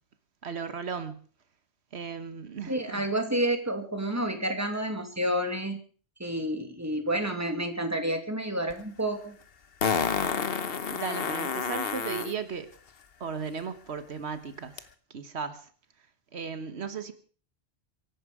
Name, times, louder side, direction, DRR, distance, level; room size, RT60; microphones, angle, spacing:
voice 1, 0.4-1.3 1.9-3.0 10.9-12.7 13.2-14.8 15.1-15.7 16.3-17.1, right 6 dB, 85° right, 1.5 m, -36 dB
voice 2, 2.7-5.8 6.2-9.3, right 1 dB, 15° right, 2.4 m, -29 dB
Fart, 8.7-8.8 9.8-12.3 14.8-14.9, left 6 dB, 65° left, 1.3 m, -29 dB
24.5 x 11.5 x 4.9 m
omnidirectional pair, 1.1 m